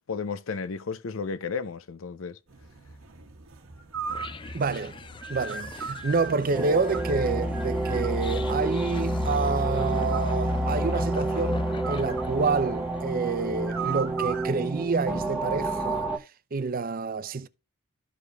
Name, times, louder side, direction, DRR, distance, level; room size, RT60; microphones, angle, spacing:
voice 1, 0.0-2.4, left 5 dB, 75° left, 0.6 m, -33 dB
sound 1, 2.5-14.5, right 5 dB, 85° right, 1.3 m, -40 dB
sound 2, 4.1-13.3, left 2 dB, 25° left, 0.4 m, -33 dB
voice 2, 4.5-5.0 5.3-16.2 16.5-17.5, right 4 dB, 45° right, 0.5 m, -28 dB
sound 3, 6.5-16.2, right 2 dB, 5° right, 0.8 m, -30 dB
13.5 x 5.0 x 2.3 m
head